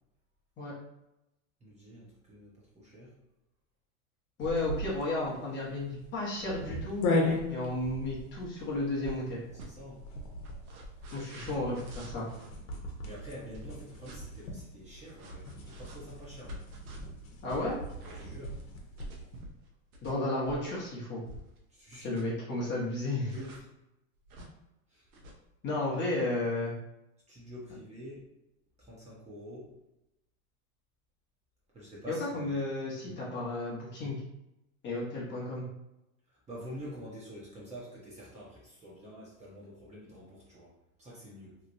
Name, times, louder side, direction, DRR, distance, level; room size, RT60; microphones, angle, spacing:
voice 1, 1.6-3.1 9.5-10.0 13.0-16.7 18.2-18.6 21.7-22.2 23.3-23.6 24.9-25.1 25.9-26.0 27.3-28.3 28.8-29.7 31.7-32.5 36.3-41.6, equal, 15° right, -6 dB, 0.8 m, -47 dB
sound 1, 4.4-19.3, left 2 dB, 75° left, 1.0 m, -38 dB
voice 2, 4.4-7.0 7.5-9.4 11.1-12.3 17.4-17.8 20.0-21.2 22.0-23.3 25.6-26.7 32.1-34.2 34.8-35.7, left 2 dB, 25° left, -5 dB, 0.9 m, -33 dB
sound 2, 9.0-9.3 9.6-9.7 10.4-12.6 13.5-14.2 15.2-21.6 21.9-22.4 23.3-23.6 24.2-24.5 25.1-25.4, equal, 85° right, 0.9 m, -48 dB
3.1 x 2.8 x 2.6 m, 0.90 s
supercardioid pair, 130°, 42 cm